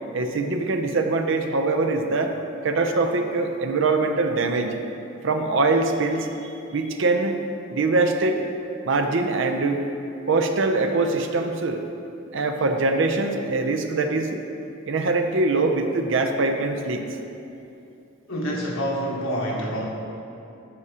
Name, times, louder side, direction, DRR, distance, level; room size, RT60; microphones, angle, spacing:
voice 1, 0.1-2.3 2.6-4.7 5.2-7.4 7.7-8.4 8.8-9.9 10.3-11.8 12.3-14.4 14.9-17.0, right 3 dB, 65° right, 6 dB, 0.5 m, -23 dB
voice 2, 18.3-19.8, equal, 85° left, -4 dB, 1.4 m, -27 dB
11.5 x 4.8 x 2.8 m, 2.7 s
head